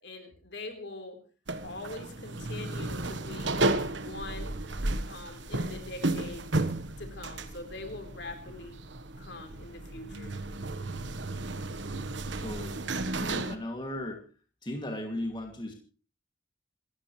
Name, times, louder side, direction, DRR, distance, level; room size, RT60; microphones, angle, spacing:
voice 1, 0.0-1.2 1.6-3.6 4.0-4.5 5.1-6.5 7.0-8.8 9.2-10.3, left 2 dB, 60° left, 5 dB, 4.0 m, -43 dB
sound 1, 1.5-13.6, right 2 dB, 65° right, 1.3 m, -33 dB
voice 2, 12.4-12.8 13.2-14.2 14.6-15.7, left 1 dB, 25° left, 2 dB, 2.5 m, -36 dB
27.0 x 14.5 x 3.3 m, 0.37 s
head